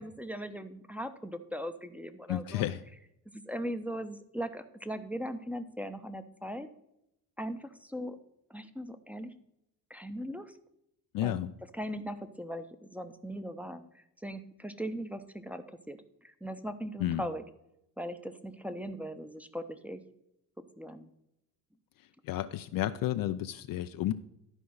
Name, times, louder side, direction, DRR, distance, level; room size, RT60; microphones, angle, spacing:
voice 1, 0.0-2.7 3.3-6.7 7.4-8.2 8.5-9.3 9.9-10.5 11.2-11.4 11.7-17.4 18.0-20.0 20.8-21.1, equal, 5° right, 7 dB, 0.8 m, -39 dB
voice 2, 2.3-2.8 11.1-11.5 17.0-17.2 22.2-24.1, left 13 dB, 45° left, 11 dB, 0.5 m, -31 dB
12.0 x 5.1 x 6.3 m, 0.82 s
hypercardioid pair, 55°, 48 cm